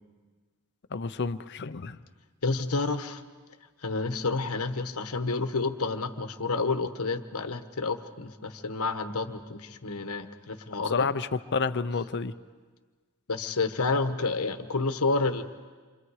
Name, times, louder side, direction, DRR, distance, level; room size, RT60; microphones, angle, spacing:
voice 1, 0.9-2.0 10.8-12.3, left 4 dB, 55° left, 12 dB, 0.7 m, -30 dB
voice 2, 2.4-3.2 3.8-11.1 13.3-15.4, left 3 dB, 85° left, 8 dB, 1.2 m, -29 dB
28.5 x 24.5 x 4.9 m, 1.4 s
head